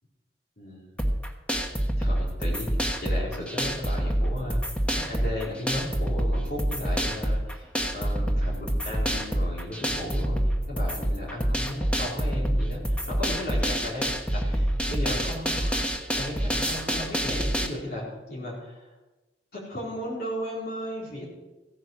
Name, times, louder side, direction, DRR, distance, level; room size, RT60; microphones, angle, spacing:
voice 1, 0.6-1.0 2.0-4.6 4.9-14.0 14.3-15.9 16.2-18.9 19.5-21.3, left 1 dB, 60° left, -5 dB, 4.3 m, -35 dB
sound 1, 1.0-17.7, equal, 5° left, 1.3 m, -27 dB
16.0 x 9.3 x 6.1 m, 1.1 s
head